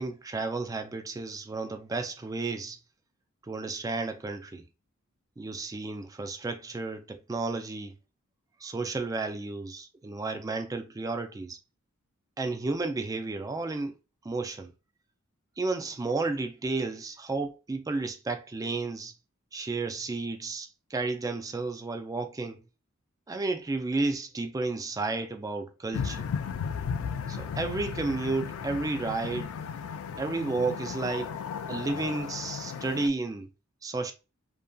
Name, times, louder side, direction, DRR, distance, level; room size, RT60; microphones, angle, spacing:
voice 1, 0.0-2.8 3.4-4.6 5.4-7.9 8.6-11.6 12.4-14.0 14.2-14.7 15.6-19.1 19.5-22.6 23.3-26.3 27.3-29.5 30.2-31.3 31.7-33.5 33.8-34.1, right 3 dB, 15° right, 0.3 m, -32 dB
sound 1, 25.9-33.1, left 7 dB, 80° left, 0.3 m, -35 dB
2.7 x 2.6 x 2.2 m
head